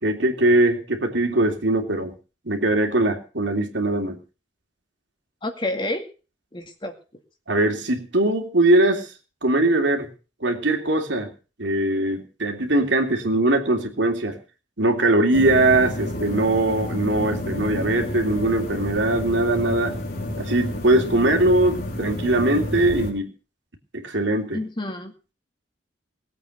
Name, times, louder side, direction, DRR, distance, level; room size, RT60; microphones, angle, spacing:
voice 1, 0.0-2.1 2.4-4.2 7.5-9.1 9.4-10.1 10.4-11.3 11.6-14.4 14.8-20.0 20.4-23.3 23.9-24.6, right 2 dB, 70° right, 4 dB, 3.1 m, -21 dB
voice 2, 5.4-6.1 6.5-6.9 24.5-25.1, left 1 dB, 25° left, 5 dB, 2.2 m, -29 dB
sound 1, 15.3-23.1, left 1 dB, 50° left, 4.1 m, -30 dB
19.0 x 8.4 x 6.6 m, 0.36 s
head